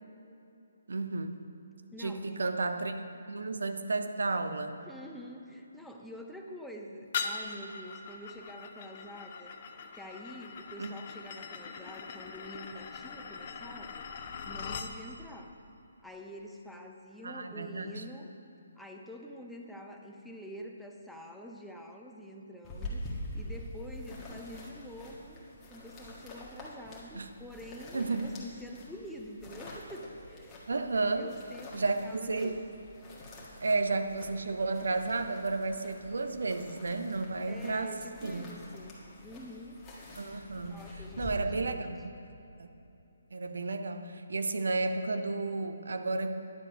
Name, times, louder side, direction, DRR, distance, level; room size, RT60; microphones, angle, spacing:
voice 1, 0.9-1.4 2.0-2.9 3.3-4.8 10.8-10.9 17.2-18.0 27.1-27.3 27.9-28.4 30.7-31.3 31.7-32.6 33.6-38.6 40.2-42.7 43.3-46.3, right 3 dB, 65° right, 8 dB, 0.6 m, -32 dB
voice 2, 1.9-2.5 4.9-9.5 9.9-14.1 14.4-15.6 16.0-18.3 18.8-30.6 31.1-32.8 37.5-39.8 40.7-41.9, equal, ahead, 0 dB, 0.7 m, -47 dB
sound 1, 7.1-14.9, left 5 dB, 40° left, 0.6 m, -41 dB
sound 2, 22.6-41.3, left 1 dB, 15° left, 1.5 m, -46 dB
10.5 x 7.4 x 5.1 m, 2.8 s
figure-of-eight pair, 140°, 0 cm